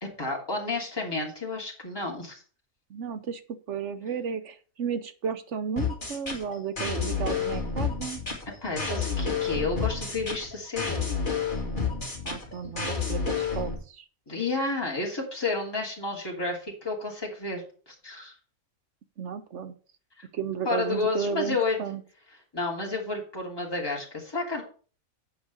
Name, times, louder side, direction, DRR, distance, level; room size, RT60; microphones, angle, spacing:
voice 1, 0.0-2.4 8.6-11.1 14.3-18.3 20.2-20.3 20.6-21.9 22.5-24.6, left 3 dB, 15° left, -2 dB, 2.8 m, -31 dB
voice 2, 2.9-3.4 3.7-8.2 12.2-14.0 19.2-19.7 20.3-22.0, right 7 dB, 60° right, 11 dB, 1.0 m, -33 dB
sound 1, 5.8-13.8, left 5 dB, 35° left, 2.5 m, -30 dB
8.1 x 5.2 x 6.5 m, 0.39 s
omnidirectional pair, 1.5 m